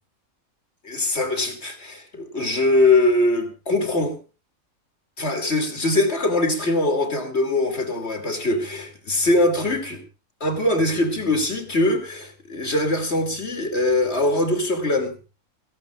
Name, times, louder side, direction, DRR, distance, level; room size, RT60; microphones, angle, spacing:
voice 1, 0.8-4.1 5.2-10.0 10.4-15.1, left 2 dB, 50° left, 5 dB, 3.0 m, -22 dB
27.5 x 11.5 x 2.4 m, 0.33 s
omnidirectional pair, 1.5 m